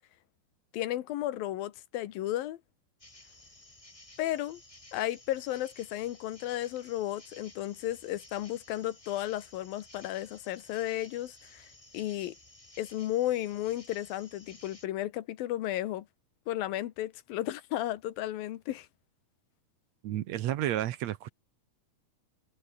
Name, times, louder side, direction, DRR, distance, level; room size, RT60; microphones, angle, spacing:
voice 1, 0.7-2.6 4.2-4.6 4.9-11.7 11.9-12.3 12.8-16.1 16.5-18.9, left 14 dB, 80° left, 3.0 m, -34 dB
sound 1, 3.0-14.9, left 1 dB, 10° left, 2.8 m, -55 dB
voice 2, 20.0-21.3, right 13 dB, 70° right, 1.7 m, -31 dB
omnidirectional pair, 4.1 m